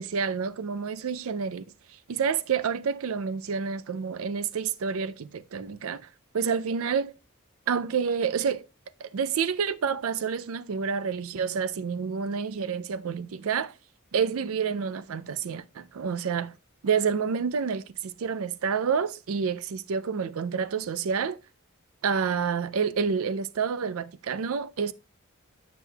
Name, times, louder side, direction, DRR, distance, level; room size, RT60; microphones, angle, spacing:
voice 1, 0.0-1.6 2.1-6.1 6.3-7.1 7.7-8.6 9.0-13.7 14.1-16.5 16.8-21.4 22.0-24.9, right 6 dB, 75° right, 0.4 m, -28 dB
9.0 x 6.0 x 2.2 m
head